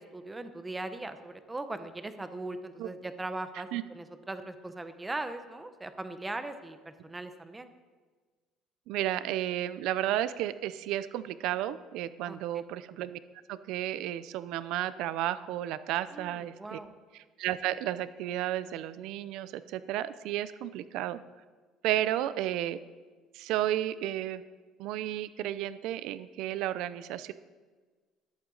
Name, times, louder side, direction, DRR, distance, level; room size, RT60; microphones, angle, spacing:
voice 1, 0.0-7.7 12.2-12.4 16.1-16.9, right 2 dB, 10° right, 9 dB, 0.7 m, -39 dB
voice 2, 8.9-13.2 13.5-16.8 17.4-21.2 21.8-22.8 23.3-24.4 24.8-27.3, right 13 dB, 65° right, 14 dB, 0.5 m, -32 dB
13.5 x 11.0 x 3.9 m, 1.4 s
cardioid pair, 165°, 0 cm